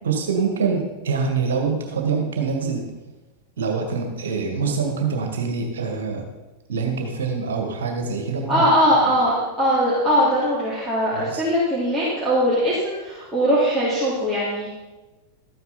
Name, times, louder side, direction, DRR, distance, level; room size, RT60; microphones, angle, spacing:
voice 1, 0.0-2.9 3.6-6.2 6.7-8.7 9.0-9.1 11.1-11.4, right 5 dB, 65° right, 3 dB, 2.0 m, -25 dB
voice 2, 8.5-14.7, equal, 5° right, -10 dB, 3.5 m, -20 dB
13.5 x 9.3 x 4.3 m, 1.1 s
figure-of-eight pair, 90°, 0 cm